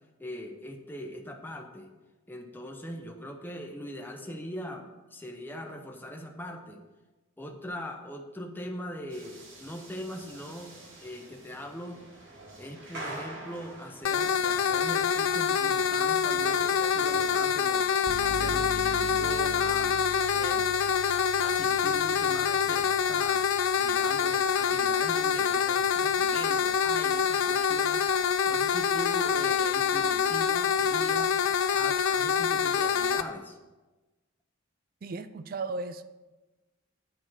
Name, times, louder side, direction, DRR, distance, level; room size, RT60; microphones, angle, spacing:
voice 1, 0.2-1.9 2.3-6.8 7.4-10.7 11.0-12.0 12.6-17.9 18.2-19.9 20.3-20.7 21.4-23.4 23.8-28.1 28.4-31.3 31.7-33.6, equal, 10° left, 0.7 m, -41 dB
sound 1, 9.1-22.4, right 1 dB, 60° right, 2.3 m, -47 dB
sound 2, 14.1-33.2, left 7 dB, 75° left, 0.5 m, -26 dB
sound 3, 18.1-25.8, equal, 15° right, 1.1 m, -43 dB
voice 2, 35.0-36.0, right 3 dB, 45° right, 0.4 m, -35 dB
8.5 x 5.0 x 6.2 m
head